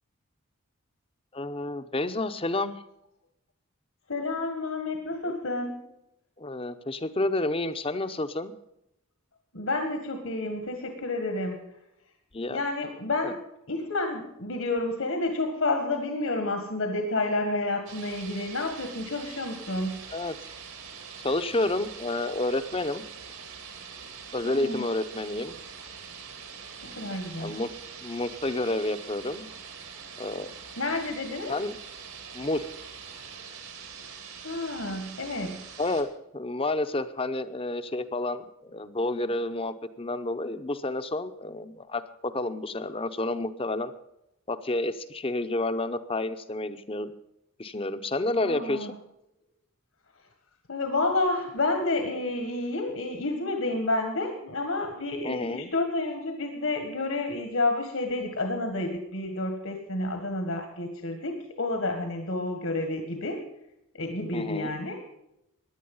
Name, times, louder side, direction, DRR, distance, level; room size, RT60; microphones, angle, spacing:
voice 1, 1.3-2.8 5.2-5.3 6.4-8.5 12.3-12.6 13.2-13.3 20.1-20.5 21.2-23.0 24.3-25.6 27.4-27.7 28.0-29.5 30.2-30.5 31.5-31.8 32.3-32.7 35.8-36.1 36.3-43.9 44.5-47.1 47.6-48.9 55.2-55.7 64.3-64.7, left 2 dB, 25° left, 11 dB, 0.7 m, -30 dB
voice 2, 4.1-5.8 9.5-11.6 12.5-13.4 13.7-20.0 24.4-24.8 26.9-27.5 30.8-31.5 34.4-35.7 48.4-48.9 50.7-63.4 63.9-65.0, left 2 dB, 70° left, 5 dB, 1.8 m, -30 dB
sound 1, 17.9-36.0, right 6 dB, 80° right, 2.9 m, -44 dB
16.5 x 11.0 x 5.5 m, 0.82 s
head